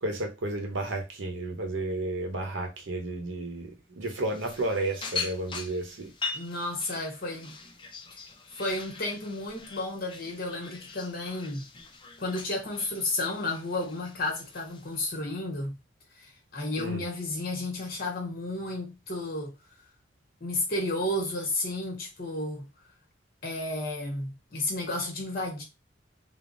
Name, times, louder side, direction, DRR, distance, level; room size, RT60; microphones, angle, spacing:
voice 1, 0.0-6.1 16.8-17.0, right 2 dB, 90° right, 0.8 m, -32 dB
sound 1, 4.1-15.2, left 4 dB, 25° left, 0.5 m, -41 dB
voice 2, 6.3-7.6 8.6-11.7 12.2-15.8 16.2-19.5 20.4-22.7 23.4-25.6, left 2 dB, 55° left, 1.0 m, -32 dB
3.4 x 2.0 x 2.5 m
head